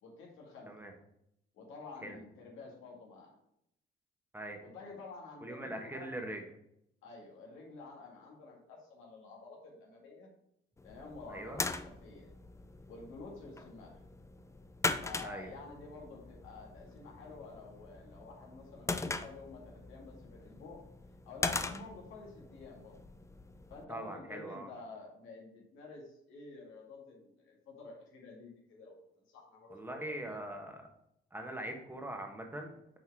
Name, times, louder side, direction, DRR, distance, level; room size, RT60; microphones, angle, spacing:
voice 1, 0.0-0.7 1.5-3.4 4.6-6.1 7.0-10.3 10.8-12.3 12.9-14.0 15.0-20.9 21.3-23.0 23.7-30.4, left 3 dB, 90° left, -2 dB, 2.1 m, -50 dB
voice 2, 5.4-6.4 11.3-11.6 15.2-15.5 23.9-24.7 29.7-30.8 31.3-33.0, right 1 dB, 10° right, 2 dB, 1.2 m, -42 dB
sound 1, 10.8-23.8, left 3 dB, 15° left, 0.4 m, -41 dB
6.1 x 4.1 x 4.6 m, 0.75 s
cardioid pair, 90°, 20 cm